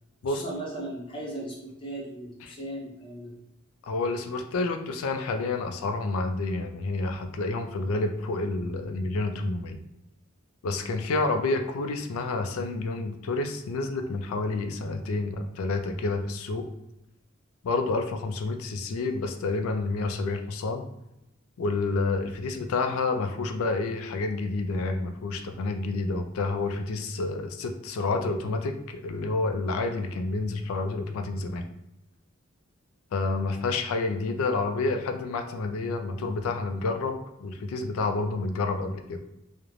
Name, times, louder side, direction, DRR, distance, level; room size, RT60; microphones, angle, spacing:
voice 1, 0.3-3.3, right 1 dB, 25° left, -5 dB, 0.8 m, -37 dB
voice 2, 3.8-9.8 10.6-16.7 17.6-20.8 21.6-31.7 33.1-39.2, left 3 dB, 75° left, 6 dB, 0.3 m, -29 dB
2.4 x 2.1 x 3.0 m, 0.86 s
head